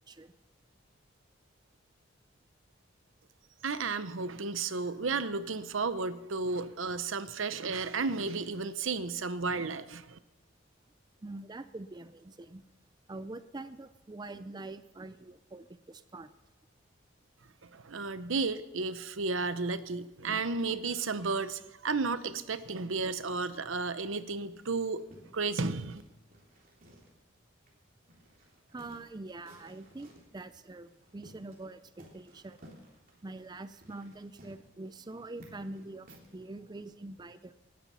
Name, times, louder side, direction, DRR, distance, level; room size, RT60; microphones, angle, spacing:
voice 1, 3.6-10.2 17.6-25.0 25.3-26.0, right 4 dB, 75° right, 13 dB, 0.8 m, -33 dB
voice 2, 11.2-12.6 13.1-16.3 28.7-32.7 33.2-37.5, right 2 dB, 20° right, 12 dB, 0.4 m, -44 dB
sound 1, 24.5-27.4 27.7-27.8 28.1-30.4 30.9-31.7 32.0-36.4, equal, 45° right, 3.5 m, -57 dB
19.0 x 10.5 x 5.6 m, 1.0 s
head